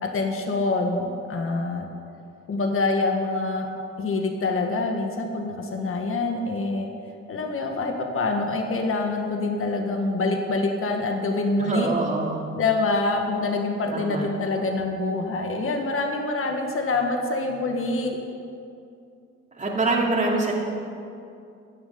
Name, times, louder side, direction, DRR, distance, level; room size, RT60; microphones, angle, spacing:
voice 1, 0.0-1.8 2.5-3.7 4.0-6.9 7.3-11.9 12.5-18.2, left 3 dB, 45° left, 3 dB, 1.7 m, -25 dB
voice 2, 11.6-12.5 13.9-14.3 19.6-20.5, right 2 dB, 25° right, -3 dB, 2.7 m, -25 dB
12.5 x 7.6 x 9.6 m, 2.5 s
cardioid pair, 90°, 30 cm